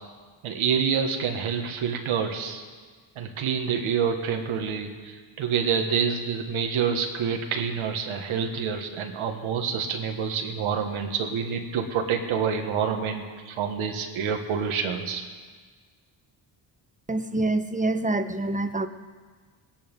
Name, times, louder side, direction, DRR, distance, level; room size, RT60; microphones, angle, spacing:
voice 1, 0.4-2.6 3.2-15.2, right 7 dB, 90° right, 4 dB, 1.5 m, -27 dB
voice 2, 17.1-18.9, right 2 dB, 15° right, 9 dB, 1.1 m, -26 dB
18.5 x 10.5 x 5.3 m, 1.5 s
cardioid pair, 55°, 47 cm